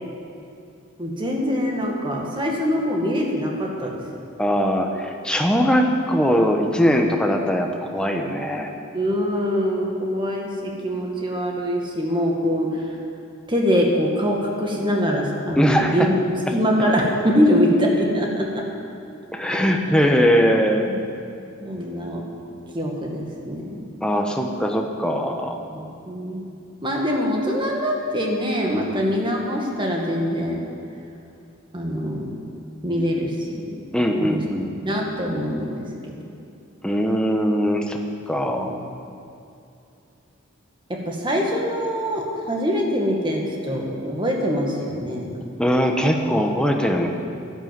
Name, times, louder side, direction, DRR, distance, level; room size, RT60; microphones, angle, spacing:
voice 1, 1.0-4.0 8.9-12.8 13.5-16.1 16.5-18.6 19.5-19.6 20.9-21.0 21.6-22.2 22.7-23.8 25.7-26.5 26.8-30.7 31.7-32.3 32.8-33.3 34.2-34.4 34.8-36.1 38.5-38.8 40.9-45.4, equal, 25° right, 0 dB, 1.9 m, -23 dB
voice 2, 4.4-8.7 15.6-16.1 19.3-20.9 24.0-25.6 33.9-35.0 36.8-38.8 45.6-47.1, equal, 5° left, 2 dB, 1.0 m, -21 dB
11.5 x 11.5 x 7.6 m, 2.6 s
head